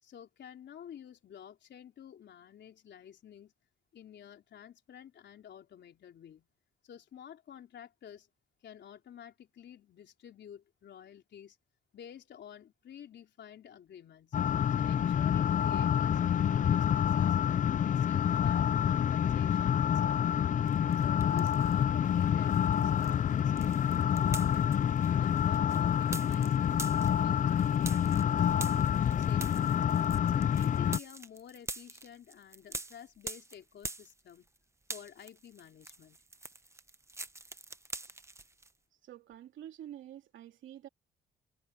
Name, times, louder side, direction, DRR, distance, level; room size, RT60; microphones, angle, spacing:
voice 1, 0.0-3.5 3.9-6.5 6.8-8.3 8.6-11.6 11.9-14.4 14.8-17.4 17.8-20.6 21.0-24.7 25.2-28.5 29.0-29.8 30.3-34.5 34.9-36.2, left 9 dB, 60° left, 3.9 m, -50 dB
sound 1, 14.3-31.0, left 9 dB, 40° left, 0.4 m, -27 dB
sound 2, 20.7-21.8 22.2-34.6 34.8-38.7, right 2 dB, 15° right, 1.0 m, -45 dB
voice 2, 39.0-40.9, right 11 dB, 75° right, 2.5 m, -48 dB
cardioid pair, 90°, 20 cm